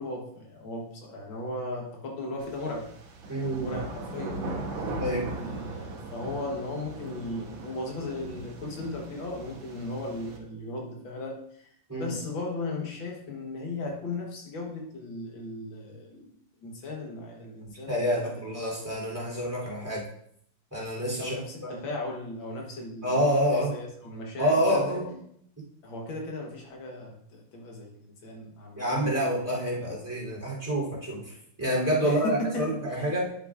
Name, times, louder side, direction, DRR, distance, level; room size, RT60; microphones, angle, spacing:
voice 1, 0.0-2.9 3.3-4.9 5.3-11.7 12.0-16.3 16.6-18.8 21.2-23.1 23.7-25.0 25.8-29.2 29.8-29.9 32.0-33.1, left 2 dB, 80° left, 0 dB, 2.0 m, -37 dB
sound 1, 2.4-10.4, right 2 dB, 85° right, 1.9 m, -39 dB
voice 2, 3.3-3.7 5.0-5.3 11.9-12.1 17.9-20.0 20.7-21.8 23.0-23.7 24.4-25.2 28.8-31.2 31.6-33.3, equal, 10° right, -4 dB, 3.2 m, -27 dB
10.0 x 7.5 x 2.5 m, 0.67 s
omnidirectional pair, 2.1 m